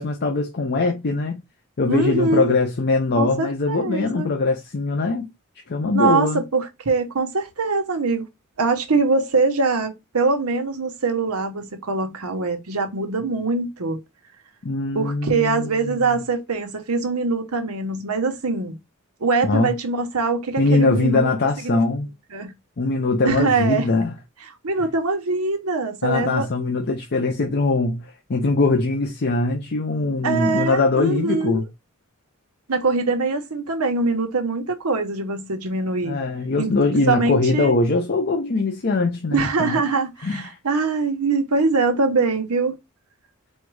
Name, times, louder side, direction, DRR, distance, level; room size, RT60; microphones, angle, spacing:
voice 1, 0.0-1.4 1.8-5.3 5.7-6.4 14.6-16.1 19.4-19.7 20.6-22.1 22.8-24.1 26.0-31.6 36.0-39.8 40.2-40.6, left 3 dB, 50° left, 0.6 m, -22 dB
voice 2, 1.9-2.6 3.2-4.3 5.9-8.2 8.6-14.0 14.9-18.7 19.2-21.3 21.6-21.8 22.3-22.5 23.2-23.9 24.6-26.5 30.2-31.6 32.7-36.2 36.5-37.7 39.3-42.8, right 3 dB, 85° right, 1.0 m, -23 dB
4.4 x 2.3 x 4.6 m
head